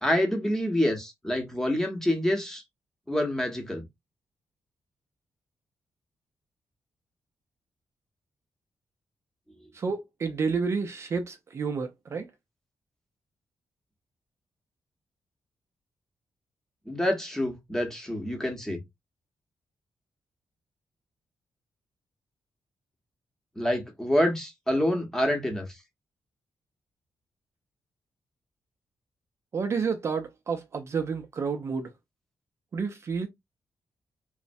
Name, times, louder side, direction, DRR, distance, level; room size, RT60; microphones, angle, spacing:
voice 1, 0.0-2.6 3.1-3.8 16.9-18.8 23.6-25.7, left 1 dB, 5° left, 0.8 m, -27 dB
voice 2, 9.7-12.3 29.5-31.9 32.7-33.3, right 5 dB, 40° right, 0.4 m, -30 dB
3.1 x 2.0 x 2.5 m
wide cardioid pair, 155°, 7 cm